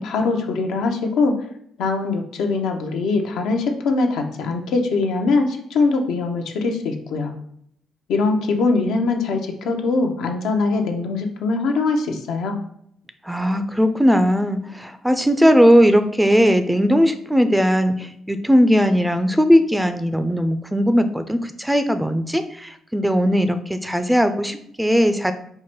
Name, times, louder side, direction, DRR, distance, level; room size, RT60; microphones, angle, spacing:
voice 1, 0.0-1.4 1.8-7.3 8.1-12.6, left 3 dB, 85° left, 3 dB, 0.6 m, -22 dB
voice 2, 13.3-25.3, equal, 5° right, 9 dB, 0.4 m, -18 dB
4.6 x 2.1 x 4.4 m, 0.70 s
cardioid pair, 90°, 0 cm